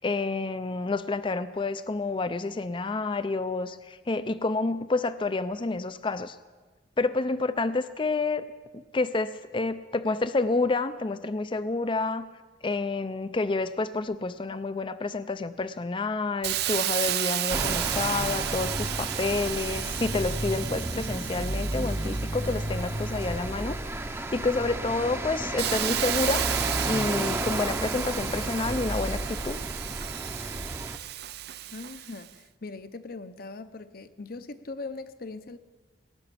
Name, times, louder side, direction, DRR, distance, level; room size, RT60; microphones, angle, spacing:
voice 1, 0.0-6.4 7.0-8.5 8.7-12.3 12.6-26.5 26.8-29.6, left 3 dB, 25° left, 13 dB, 0.5 m, -29 dB
Hiss, 16.4-24.0 24.5-32.3, right 13 dB, 60° right, 0.4 m, -33 dB
sound 1, 17.5-31.0, right 1 dB, 15° right, 0.7 m, -32 dB
voice 2, 31.7-35.6, left 3 dB, 55° left, 12 dB, 0.8 m, -40 dB
19.0 x 7.1 x 10.0 m, 1.4 s
head